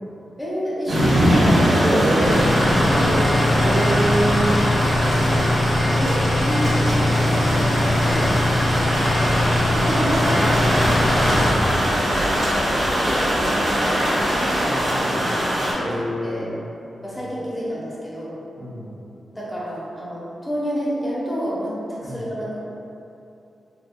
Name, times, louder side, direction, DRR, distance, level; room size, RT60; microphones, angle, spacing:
voice 1, 0.4-1.9 2.8-3.2 3.5-3.8 5.8-8.6 9.1-11.5 12.5-14.1 15.7-16.5 17.0-18.4 19.3-22.7, equal, 5° left, -7 dB, 1.1 m, -30 dB
sound 1, 0.9-15.7, equal, 65° right, 1.4 m, -21 dB
voice 2, 1.8-3.2 3.5-5.4 14.6-15.3 15.8-16.6 17.1-17.2 18.6-19.0 22.0-22.2, right 1 dB, 45° right, -9 dB, 1.2 m, -26 dB
sound 2, 2.2-11.6, left 1 dB, 55° left, 0.5 m, -22 dB
4.2 x 2.8 x 2.3 m, 2.8 s
cardioid pair, 65°, 0 cm